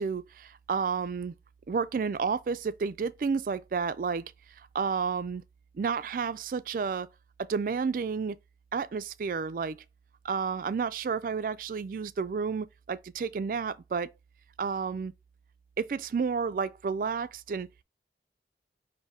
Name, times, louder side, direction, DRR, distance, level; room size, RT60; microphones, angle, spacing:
voice 1, 0.0-1.3 1.7-4.2 4.7-5.4 5.7-7.1 7.4-8.4 8.7-9.8 10.2-14.1 14.6-15.1 15.8-17.8, right 5 dB, 50° right, 0.3 m, -31 dB
5.5 x 2.7 x 3.5 m
head